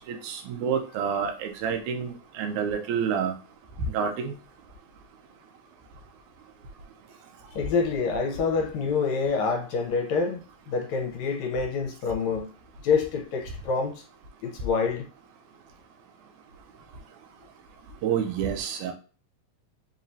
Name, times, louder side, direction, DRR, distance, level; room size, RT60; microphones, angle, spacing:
voice 1, 0.1-3.3 3.9-4.3 18.0-18.9, right 7 dB, 85° right, 2.1 m, -28 dB
voice 2, 7.5-12.5 12.8-14.0 14.4-15.1, left 5 dB, 75° left, 1.9 m, -27 dB
5.4 x 3.0 x 2.6 m
omnidirectional pair, 3.5 m